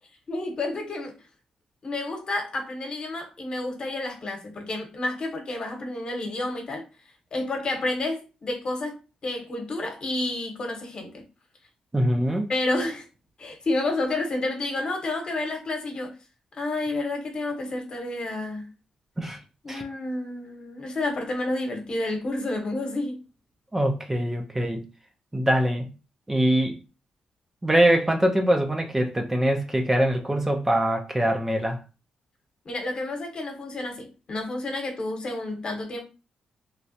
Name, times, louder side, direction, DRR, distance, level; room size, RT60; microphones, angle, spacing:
voice 1, 0.3-1.1 1.8-6.9 7.3-11.2 12.5-13.1 13.4-16.1 16.5-18.7 19.6-23.2 32.6-36.0, left 2 dB, 50° left, 1.0 m, -30 dB
voice 2, 11.9-12.5 19.2-19.4 19.7-19.8 23.7-24.8 25.3-25.9 26.3-26.8 27.6-31.8, right 1 dB, 15° right, 0.5 m, -23 dB
3.1 x 2.4 x 2.8 m
cardioid pair, 100°, 2 cm